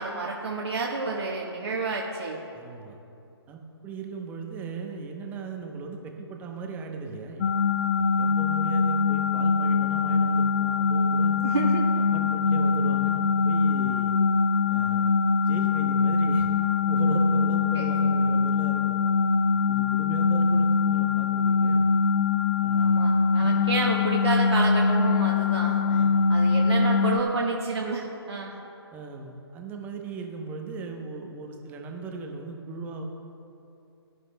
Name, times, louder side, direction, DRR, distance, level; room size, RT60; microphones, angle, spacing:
voice 1, 0.0-2.4 11.4-11.8 17.7-17.9 22.7-26.0 26.3-28.5, right 3 dB, 75° right, -3 dB, 1.4 m, -30 dB
voice 2, 2.5-3.0 3.5-7.5 8.0-11.4 12.1-14.1 14.7-15.2 15.4-16.5 16.9-19.0 19.5-21.9 22.6-23.0 23.4-23.5 25.9-26.3 28.9-33.0, right 4 dB, 15° right, 2 dB, 0.9 m, -38 dB
sound 1, 7.4-27.2, left 4 dB, 35° left, 0.5 m, -23 dB
19.0 x 11.0 x 2.3 m, 2.7 s
hypercardioid pair, 150°, 14 cm